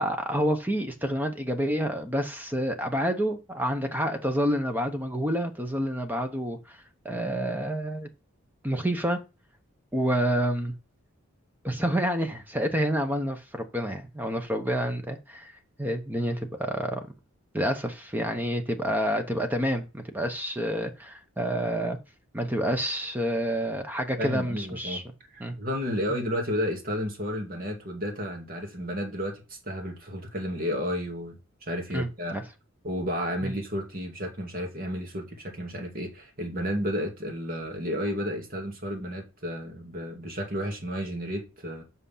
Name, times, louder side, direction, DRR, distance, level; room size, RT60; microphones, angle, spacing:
voice 1, 0.0-6.8 7.0-8.1 8.6-9.2 9.9-10.7 11.6-15.5 15.8-17.1 17.5-22.0 22.3-25.0 25.4-25.5 31.9-32.4 33.4-33.5, equal, 10° right, 0.9 m, -28 dB
voice 2, 24.2-25.0 25.3-31.4 31.7-32.4 32.8-41.8, equal, 45° right, 2.2 m, -32 dB
7.9 x 5.6 x 5.7 m
head